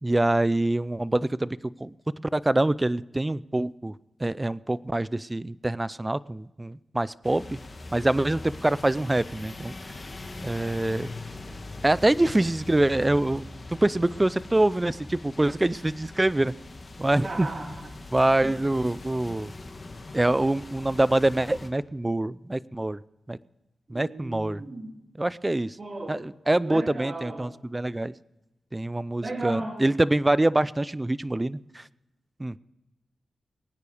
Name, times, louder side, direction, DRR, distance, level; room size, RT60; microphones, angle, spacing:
voice 1, 0.0-1.9 2.3-3.9 4.2-7.6 7.9-9.7 10.4-11.1 11.8-16.5 17.0-17.5 18.1-19.5 20.1-23.0 23.3-23.4 23.9-24.6 25.2-25.8 26.1-28.1 28.7-31.8 32.4-32.5, right 1 dB, 20° right, 19 dB, 0.4 m, -25 dB
sound 1, 7.2-21.7, left 2 dB, 35° left, 1.7 m, -41 dB
voice 2, 17.2-18.0 23.9-24.9 25.8-26.2 26.6-27.5 29.2-29.8, right 2 dB, 40° right, 2 dB, 2.6 m, -36 dB
21.0 x 9.5 x 4.9 m, 0.99 s
cardioid pair, 75°, 0 cm